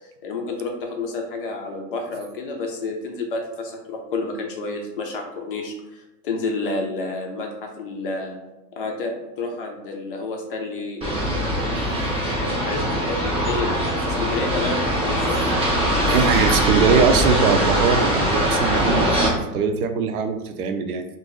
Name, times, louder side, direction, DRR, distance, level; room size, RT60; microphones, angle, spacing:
voice 1, 0.0-8.4 8.8-11.2 12.2-16.2, left 3 dB, 40° left, 2 dB, 0.4 m, -30 dB
sound 1, 11.0-19.3, equal, 15° right, 0.7 m, -22 dB
voice 2, 16.1-21.0, right 5 dB, 65° right, 7 dB, 0.6 m, -21 dB
2.7 x 2.6 x 3.7 m, 0.98 s
hypercardioid pair, 145°, 47 cm